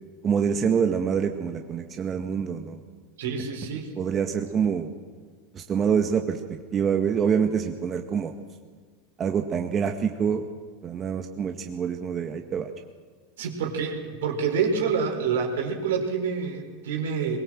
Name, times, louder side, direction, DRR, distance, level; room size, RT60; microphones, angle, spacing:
voice 1, 0.2-2.8 4.0-4.9 5.5-6.4 6.7-8.3 9.2-10.4 10.8-12.7, right 7 dB, 30° right, 4 dB, 1.7 m, -26 dB
voice 2, 3.2-3.9 13.4-17.4, right 6 dB, 70° right, 3 dB, 4.5 m, -27 dB
22.0 x 22.0 x 7.6 m, 1.5 s
figure-of-eight pair, 85°, 0 cm